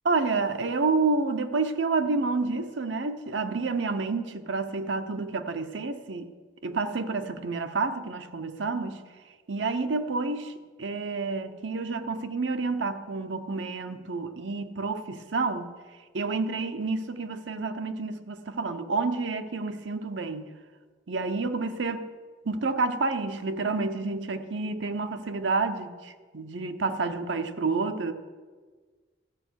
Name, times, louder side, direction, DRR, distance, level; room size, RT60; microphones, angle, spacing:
voice 1, 0.0-6.3 6.6-9.0 9.5-10.5 10.8-15.7 16.1-20.5 21.1-22.1 22.4-28.1, right 3 dB, 80° right, 8 dB, 0.8 m, -29 dB
14.0 x 7.1 x 6.4 m, 1.5 s
head